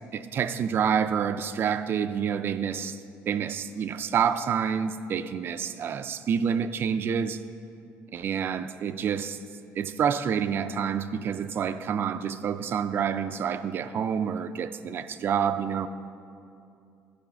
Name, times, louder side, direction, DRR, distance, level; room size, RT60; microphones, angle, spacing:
voice 1, 0.1-7.4 8.1-9.4 9.8-15.9, right 7 dB, 50° right, 11 dB, 0.4 m, -28 dB
12.0 x 5.0 x 5.7 m, 2.6 s
cardioid pair, 100°, 5 cm